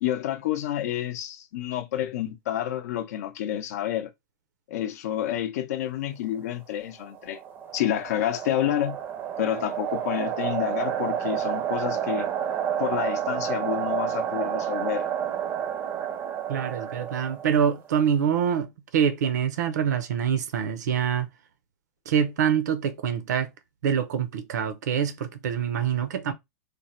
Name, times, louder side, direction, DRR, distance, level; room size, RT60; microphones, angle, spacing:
voice 1, 0.0-4.1 4.7-7.4 7.7-9.0 9.4-12.3 12.8-15.1, left 11 dB, 65° left, 0.5 m, -29 dB
sound 1, 7.0-17.9, right 9 dB, 25° right, 0.5 m, -30 dB
voice 2, 16.5-21.3 22.1-23.5 23.8-26.3, right 8 dB, 80° right, 0.6 m, -25 dB
3.3 x 2.1 x 4.2 m
supercardioid pair, 150°, 9 cm